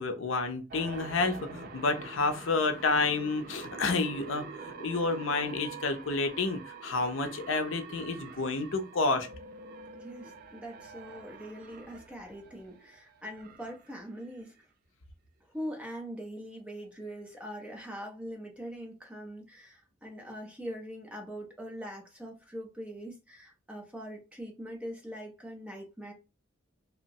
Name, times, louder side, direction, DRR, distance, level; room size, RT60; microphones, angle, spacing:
voice 1, 0.0-9.3, left 3 dB, 75° left, 0.6 m, -30 dB
sound 1, 0.7-14.6, right 4 dB, 50° right, 0.3 m, -46 dB
voice 2, 9.9-14.5 15.5-26.1, equal, 5° right, 0.7 m, -42 dB
2.9 x 2.1 x 2.6 m
head